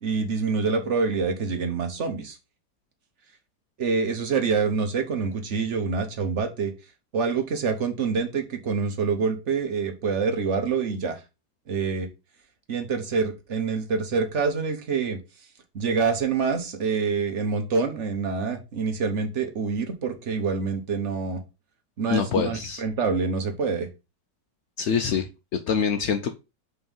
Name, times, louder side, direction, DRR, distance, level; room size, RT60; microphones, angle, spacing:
voice 1, 0.0-2.4 3.8-6.7 7.1-11.2 11.7-12.1 12.7-15.2 15.7-21.4 22.0-23.9, right 5 dB, 50° right, 6 dB, 1.2 m, -26 dB
voice 2, 22.1-22.8 24.8-26.3, left 7 dB, 85° left, 7 dB, 0.6 m, -25 dB
5.4 x 3.6 x 5.4 m, 0.27 s
omnidirectional pair, 1.9 m